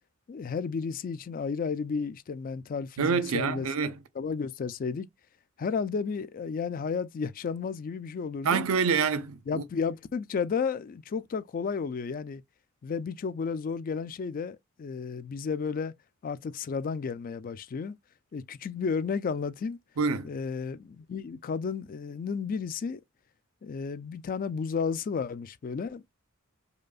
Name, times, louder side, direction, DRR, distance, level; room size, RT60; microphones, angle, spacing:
voice 1, 0.3-3.7 4.2-5.1 5.6-8.7 9.5-12.4 12.8-15.9 16.2-18.0 18.3-19.8 20.2-23.0 23.6-26.0, left 5 dB, 40° left, 0.3 m, -32 dB
voice 2, 3.0-3.9 8.4-9.6 20.0-20.3, right 5 dB, 80° right, 0.5 m, -26 dB
5.0 x 2.3 x 2.3 m
head